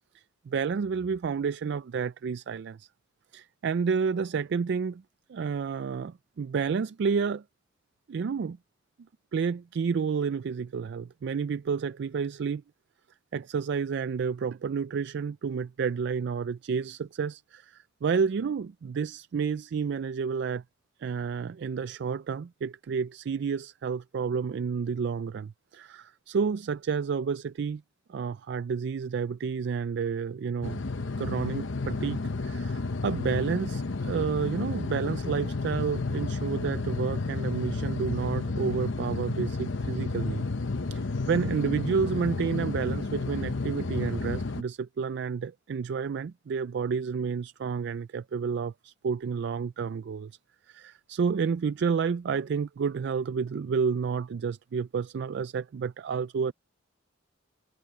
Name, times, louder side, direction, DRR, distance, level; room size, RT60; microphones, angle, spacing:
voice 1, 0.1-2.9 3.3-5.0 5.3-7.4 8.1-8.6 9.3-12.6 13.3-20.6 21.0-27.8 28.1-30.8 31.2-40.5 40.9-50.3 50.7-56.5, right 6 dB, 60° right, 0.3 m, -30 dB
sound 1, 30.6-44.6, left 3 dB, 70° left, 0.9 m, -31 dB
head